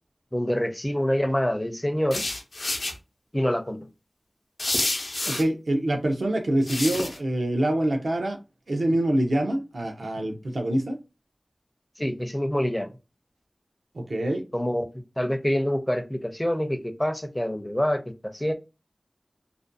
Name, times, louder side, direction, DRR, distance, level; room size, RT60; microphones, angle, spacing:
voice 1, 0.3-2.2 3.3-3.9 12.0-12.9 14.5-14.9 15.2-18.5, equal, 15° left, 0.4 m, -26 dB
sound 1, 2.1-2.9 4.6-5.4 6.7-7.2, left 2 dB, 75° left, 0.5 m, -28 dB
voice 2, 5.2-8.4 8.7-11.0 13.9-14.4, right 1 dB, 90° right, 0.5 m, -25 dB
2.4 x 2.2 x 2.5 m
wide cardioid pair, 55°, 0 cm